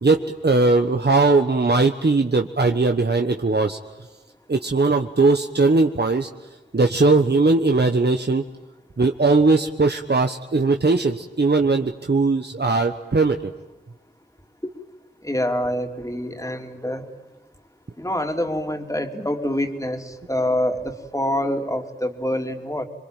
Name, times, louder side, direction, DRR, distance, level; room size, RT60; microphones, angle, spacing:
voice 1, 0.0-3.8 4.5-6.3 6.7-8.4 9.0-13.5, right 3 dB, 70° right, 5 dB, 1.3 m, -19 dB
voice 2, 15.2-17.0 18.0-22.8, left 1 dB, 20° left, 5 dB, 3.1 m, -26 dB
27.5 x 22.5 x 9.1 m, 1.1 s
wide cardioid pair, 50°, 18 cm